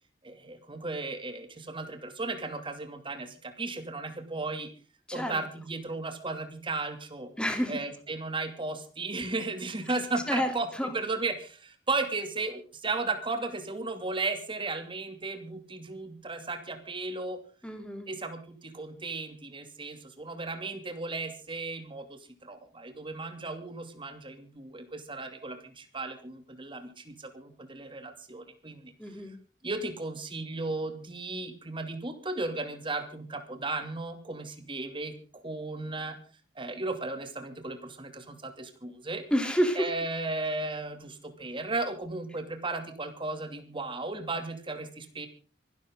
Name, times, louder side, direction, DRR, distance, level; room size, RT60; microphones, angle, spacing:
voice 1, 0.2-4.7 5.1-7.3 7.7-17.4 18.1-28.9 29.6-36.2 36.6-39.2 39.7-45.3, right 3 dB, 30° right, 7 dB, 2.6 m, -35 dB
voice 2, 7.4-7.7 10.3-10.9 17.6-18.1 29.0-29.3 39.3-39.9, equal, 5° left, 5 dB, 3.1 m, -29 dB
25.0 x 12.5 x 3.8 m, 0.37 s
head